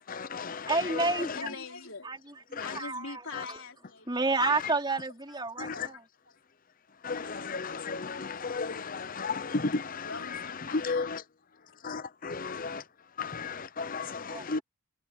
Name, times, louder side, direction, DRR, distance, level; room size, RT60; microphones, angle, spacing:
voice 1, 0.1-0.8 5.6-5.7 7.0-10.1 10.7-11.1 11.8-12.8 13.2-14.6, left 4 dB, 40° left, 0.7 m, -34 dB
voice 2, 0.7-1.5 2.0-2.2 2.7-3.2 3.5-3.6 4.1-6.0 14.1-14.4, right 3 dB, 20° right, 3.9 m, -30 dB
voice 3, 1.2-2.2 2.6-4.1 4.9-5.0 5.7-6.0 10.0-11.1, left 4 dB, 65° left, 3.9 m, -42 dB
head